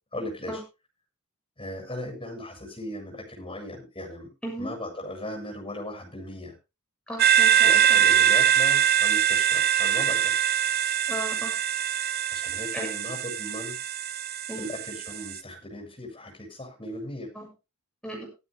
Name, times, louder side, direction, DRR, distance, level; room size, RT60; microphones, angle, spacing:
voice 1, 0.1-0.6 1.6-4.3 4.6-6.5 7.6-10.3 12.3-13.8 14.6-17.3, left 1 dB, 20° left, 2 dB, 7.2 m, -37 dB
voice 2, 7.1-8.0 11.1-11.5 12.7-12.9 14.5-14.6 17.3-17.5 18.0-18.3, equal, 5° left, -1 dB, 7.1 m, -35 dB
sound 1, 7.2-15.4, right 10 dB, 45° right, 0.7 m, -23 dB
19.0 x 13.0 x 2.2 m, 0.28 s
head